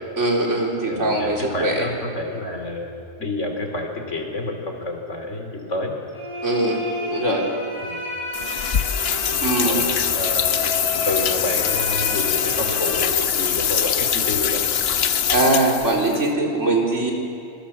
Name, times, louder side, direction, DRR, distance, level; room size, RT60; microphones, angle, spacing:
voice 1, 0.2-1.9 6.4-6.8 7.1-7.5 9.4-9.8 15.3-17.1, right 2 dB, 75° right, -1 dB, 4.1 m, -21 dB
voice 2, 0.9-5.9 7.8-8.0 9.6-10.6 11.1-14.6, left 2 dB, 80° left, 3 dB, 3.5 m, -29 dB
sound 1, 6.1-13.9, left 1 dB, 25° left, 6.2 m, -31 dB
sound 2, 8.3-16.2, left 8 dB, 60° left, 1.0 m, -23 dB
26.5 x 21.5 x 7.4 m, 2.5 s
omnidirectional pair, 1.2 m